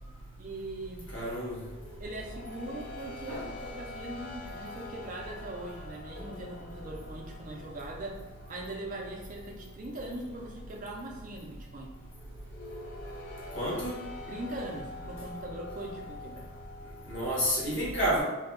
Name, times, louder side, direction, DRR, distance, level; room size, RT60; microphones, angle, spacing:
voice 1, 0.4-1.1 2.0-8.2 8.5-11.9 14.3-16.4, right 1 dB, 40° right, 0 dB, 0.5 m, -41 dB
voice 2, 1.1-1.6 3.3-3.5 13.5-14.0 17.1-18.2, equal, 60° left, -6 dB, 1.2 m, -29 dB
sound 1, 1.6-17.5, left 2 dB, 40° left, 0.4 m, -46 dB
2.7 x 2.3 x 3.6 m, 1.1 s
head